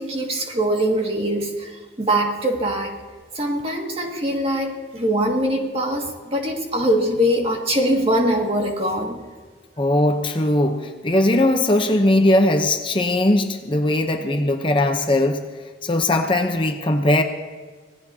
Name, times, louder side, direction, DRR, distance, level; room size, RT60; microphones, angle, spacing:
voice 1, 0.0-3.0 3.3-9.2, right 1 dB, 35° right, 0 dB, 2.1 m, -22 dB
voice 2, 9.8-15.4 15.8-17.2, left 1 dB, 30° left, 5 dB, 0.8 m, -19 dB
25.5 x 18.0 x 2.9 m, 1.4 s
head